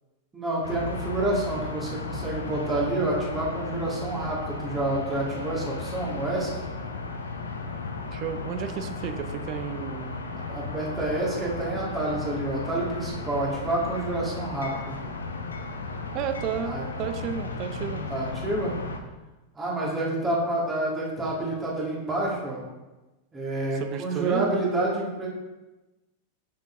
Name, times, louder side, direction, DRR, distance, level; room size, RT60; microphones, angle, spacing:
voice 1, 0.3-6.5 10.3-15.0 16.6-16.9 18.1-18.7 19.5-22.6 23.3-25.3, right 2 dB, 15° right, -5 dB, 2.3 m, -28 dB
sound 1, 0.6-19.0, left 3 dB, 75° left, 0.6 m, -35 dB
voice 2, 8.1-10.1 16.1-18.0 23.8-24.5, right 8 dB, 40° right, 8 dB, 0.6 m, -32 dB
7.6 x 6.4 x 2.8 m, 1.1 s
figure-of-eight pair, 90°, 0 cm